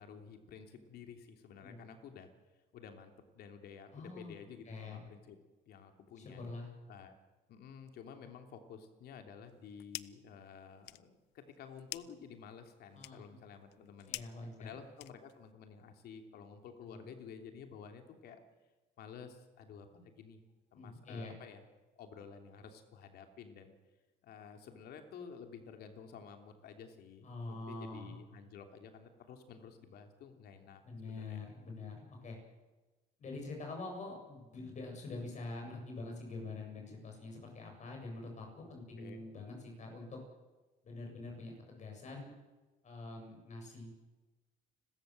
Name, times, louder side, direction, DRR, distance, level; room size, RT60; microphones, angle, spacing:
voice 1, 0.0-2.3 2.7-5.4 5.7-6.4 6.9-7.1 7.5-14.2 14.6-18.4 19.0-20.4 20.7-21.7 22.0-23.7 24.2-31.4 39.0-39.3, left 6 dB, 70° left, 6 dB, 3.1 m, -52 dB
voice 2, 3.9-4.3 4.7-5.0 6.2-6.7 12.9-13.4 14.1-14.7 16.8-17.1 20.7-21.3 27.2-28.2 30.8-32.4 33.2-40.2 40.8-42.3 42.8-43.9, left 3 dB, 45° left, 2 dB, 7.7 m, -45 dB
sound 1, 9.5-10.3 10.6-15.5, left 19 dB, 90° left, 0.6 m, -49 dB
30.0 x 13.5 x 7.8 m, 1.2 s
cardioid pair, 110°, 17 cm